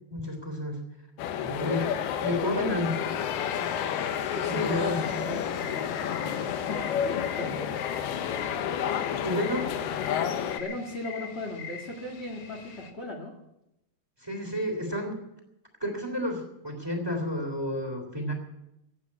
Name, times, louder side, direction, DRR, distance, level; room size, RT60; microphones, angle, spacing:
voice 1, 0.1-0.8 1.4-1.9 2.2-3.0 3.5-3.7 4.5-5.3 9.2-9.7 14.2-15.2 15.8-18.3, left 1 dB, 5° right, 4 dB, 2.4 m, -31 dB
sound 1, 1.2-10.6, left 8 dB, 75° left, 2.9 m, -30 dB
sound 2, 2.8-12.9, left 7 dB, 60° left, 2.9 m, -43 dB
voice 2, 4.3-7.7 10.6-13.3, left 1 dB, 35° left, 1 dB, 0.9 m, -37 dB
16.0 x 8.8 x 9.7 m, 0.88 s
omnidirectional pair, 4.6 m